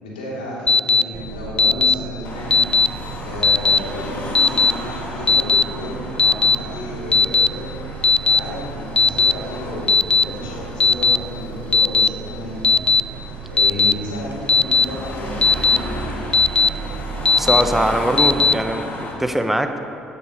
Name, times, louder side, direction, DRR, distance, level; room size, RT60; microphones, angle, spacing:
voice 1, 0.0-2.6 3.2-7.7 8.1-12.6 13.5-16.3, left 1 dB, 80° left, -6 dB, 3.2 m, -32 dB
Alarm, 0.7-1.0 1.6-1.9 2.5-2.9 3.4-3.8 4.3-4.7 5.3-5.6 6.2-6.6 7.1-7.5 8.0-8.4 9.0-9.3 9.9-10.2 10.8-11.2 11.7-12.1 12.6-13.0 13.6-13.9 14.5-14.8 15.4-15.8 16.3-16.7 17.3-17.6 18.2-18.5, left 4 dB, 20° left, 0.3 m, -15 dB
sound 1, 1.1-18.6, right 5 dB, 55° right, 0.8 m, -35 dB
Car passing by / Traffic noise roadway noise / Engine, 2.2-19.1, left 1 dB, 45° left, 2.3 m, -34 dB
voice 2, 17.4-18.9 19.2-19.7, right 1 dB, 5° right, 6 dB, 1.0 m, -21 dB
17.5 x 9.6 x 3.2 m, 2.5 s
figure-of-eight pair, 50°, 5 cm